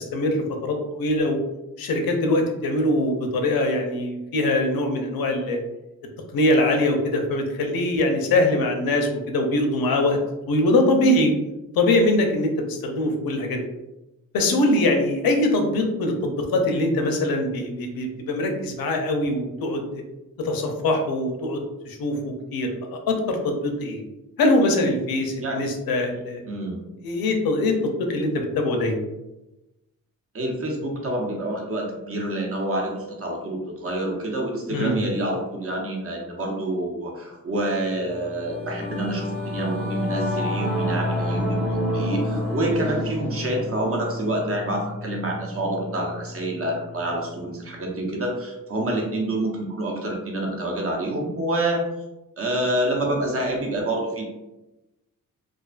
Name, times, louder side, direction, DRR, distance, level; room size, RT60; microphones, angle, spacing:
voice 1, 0.0-1.4 1.8-5.6 6.3-10.2 10.5-11.3 11.8-13.6 14.3-20.0 20.4-24.0 24.4-26.4 27.0-29.0 34.7-35.0, left 1 dB, 90° left, 3 dB, 0.5 m, -23 dB
voice 2, 26.5-26.8 30.3-51.9 52.4-54.2, right 1 dB, 40° right, 0 dB, 0.7 m, -27 dB
Singing / Musical instrument, 37.8-47.5, left 1 dB, 85° right, 1.2 m, -29 dB
2.4 x 2.3 x 2.3 m, 0.98 s
cardioid pair, 75°, 34 cm